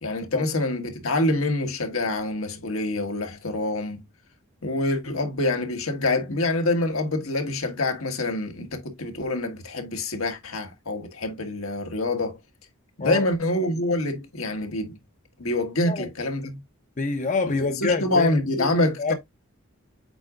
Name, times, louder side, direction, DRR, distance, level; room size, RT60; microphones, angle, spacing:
voice 1, 0.0-4.0 4.6-12.4 13.0-15.0 15.4-16.6 17.8-19.1, left 2 dB, 80° left, 1.6 m, -26 dB
voice 2, 17.0-18.7 19.0-19.1, left 3 dB, 35° left, 0.7 m, -26 dB
8.0 x 4.8 x 2.4 m
head